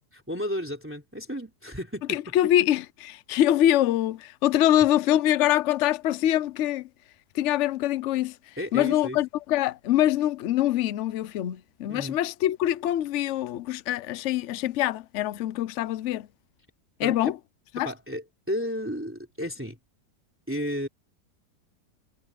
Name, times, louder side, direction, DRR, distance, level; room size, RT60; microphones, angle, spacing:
voice 1, 0.1-2.3 8.6-9.2 11.9-12.2 17.0-17.3 17.8-19.8 20.5-20.9, equal, 5° right, 3.3 m, -33 dB
voice 2, 2.1-6.9 7.3-8.3 8.7-16.3 17.0-17.3 17.7-17.9, left 12 dB, 60° left, 0.8 m, -24 dB
omnidirectional pair, 1.8 m